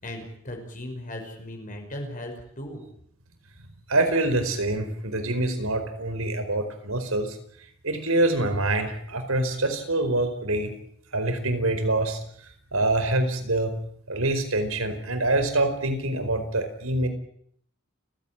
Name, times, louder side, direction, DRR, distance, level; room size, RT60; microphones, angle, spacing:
voice 1, 0.0-2.8, left 1 dB, 40° left, 3 dB, 5.7 m, -37 dB
voice 2, 3.9-7.4 7.8-10.7 11.1-12.2 12.7-13.8 14.1-17.1, right 2 dB, 85° right, 8 dB, 4.8 m, -25 dB
29.5 x 16.5 x 9.0 m, 0.68 s
head